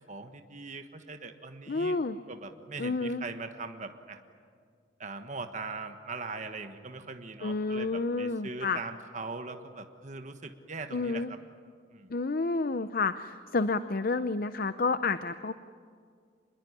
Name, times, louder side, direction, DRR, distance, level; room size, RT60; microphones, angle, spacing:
voice 1, 0.0-2.0 2.3-4.2 5.0-11.4 11.9-12.1, right 3 dB, 40° right, 7 dB, 1.4 m, -41 dB
voice 2, 1.7-2.2 2.8-3.2 7.4-8.8 10.9-11.3 12.1-15.5, left 3 dB, 50° left, 12 dB, 0.6 m, -30 dB
25.5 x 21.0 x 9.8 m, 2.1 s
head